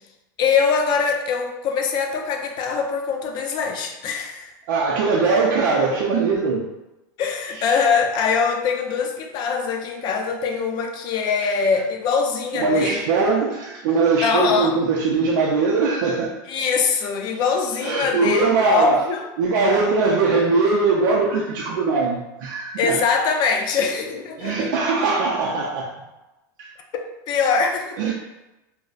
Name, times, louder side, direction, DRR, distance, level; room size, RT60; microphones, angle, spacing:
voice 1, 0.4-4.5 7.2-13.1 14.2-14.7 16.5-19.3 22.8-24.7 26.9-28.1, left 5 dB, 45° left, 4 dB, 0.5 m, -23 dB
voice 2, 4.7-6.7 7.5-7.8 11.4-11.5 12.5-16.3 17.8-19.0 19.4-23.0 24.4-25.9 26.6-26.7 28.0-28.1, right 4 dB, 85° right, -2 dB, 0.4 m, -21 dB
3.8 x 2.0 x 2.4 m, 0.97 s
supercardioid pair, 130°, 10 cm